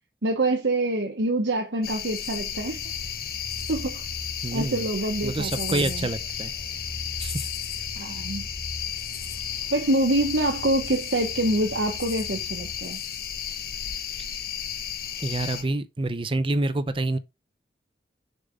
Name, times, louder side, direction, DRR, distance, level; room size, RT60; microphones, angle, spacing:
voice 1, 0.2-2.8 3.7-4.0 4.5-6.1 8.0-8.5 9.7-13.0, right 1 dB, 90° right, 1.1 m, -26 dB
sound 1, 1.8-15.6, left 9 dB, 55° left, 1.3 m, -33 dB
sound 2, 2.5-12.8, left 1 dB, 15° left, 2.8 m, -41 dB
voice 2, 4.4-4.9 5.2-6.5 7.2-7.5 14.2-14.3 15.2-17.2, right 2 dB, 30° right, 0.6 m, -27 dB
6.7 x 5.6 x 3.7 m
head